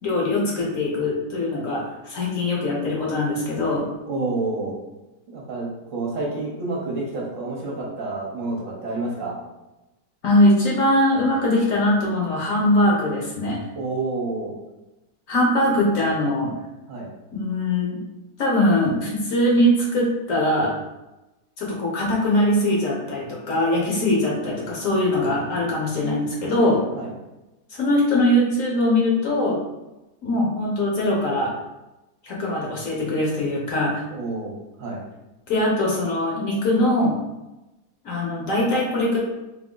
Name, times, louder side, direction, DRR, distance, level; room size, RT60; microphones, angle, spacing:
voice 1, 0.0-3.9 10.2-13.6 15.3-16.5 17.3-18.0 18.4-20.7 21.6-26.8 27.7-29.6 30.2-31.5 32.2-34.0 35.5-37.2 38.0-39.2, left 1 dB, 55° left, -3 dB, 1.1 m, -21 dB
voice 2, 4.1-4.8 5.3-9.4 13.7-14.5 15.6-15.7 16.9-17.1 27.0-27.1 34.1-34.5 34.8-35.0, right 3 dB, 55° right, -3 dB, 1.1 m, -29 dB
3.8 x 2.7 x 3.8 m, 0.99 s
omnidirectional pair, 1.8 m